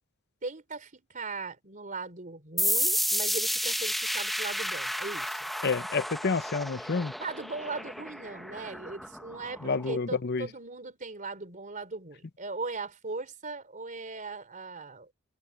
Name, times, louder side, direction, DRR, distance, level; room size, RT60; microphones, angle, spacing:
voice 1, 0.4-5.4 7.2-15.1, right 3 dB, 40° right, 3.7 m, -39 dB
sound 1, 2.6-10.0, equal, ahead, 0.8 m, -32 dB
voice 2, 5.6-7.1 9.6-10.5, left 4 dB, 50° left, 0.8 m, -29 dB
head